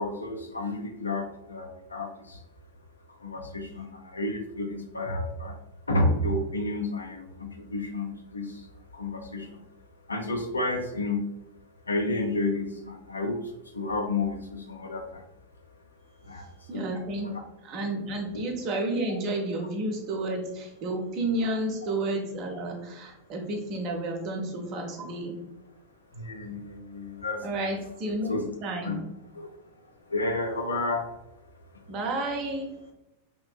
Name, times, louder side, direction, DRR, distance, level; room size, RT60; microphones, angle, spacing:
voice 1, 0.0-2.4 3.2-5.5 5.9-8.5 8.9-9.5 10.1-11.2 11.9-13.4 13.7-15.2 16.3-16.5 16.7-16.9 17.2-17.4 18.3-18.4 26.1-27.7 28.3-28.5 28.8-29.0 29.3-29.5 30.1-31.0, left 2 dB, 75° left, 3 dB, 0.4 m, -31 dB
voice 2, 16.7-17.3 17.6-25.4 27.4-29.0 31.9-32.7, right 2 dB, 40° right, 2 dB, 0.6 m, -31 dB
3.0 x 2.5 x 2.3 m, 0.88 s
figure-of-eight pair, 90°, 0 cm